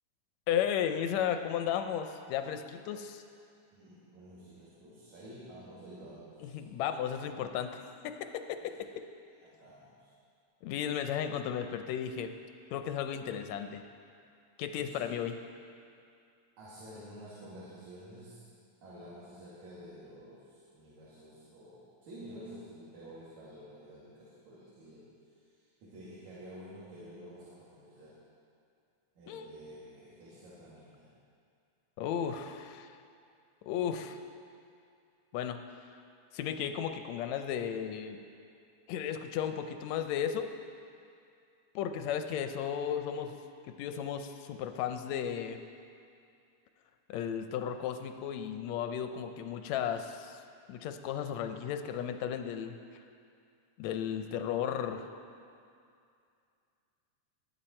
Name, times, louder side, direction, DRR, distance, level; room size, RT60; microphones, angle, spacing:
voice 1, 0.5-3.2 6.4-8.4 10.6-12.3 12.7-13.8 14.6-15.4 29.3-29.5 32.0-33.0 33.7-34.2 35.3-35.6 36.3-38.2 38.9-40.5 41.7-43.4 43.7-45.6 47.1-50.4 50.7-53.0 53.8-55.1, left 9 dB, 75° left, 7 dB, 1.7 m, -34 dB
voice 2, 3.7-6.6 7.1-7.3 9.4-10.1 14.8-15.0 16.6-18.4 18.8-25.1 25.3-28.2 29.2-31.1, equal, 65° right, -9 dB, 3.6 m, -50 dB
20.5 x 8.8 x 4.4 m, 2.4 s
omnidirectional pair, 3.6 m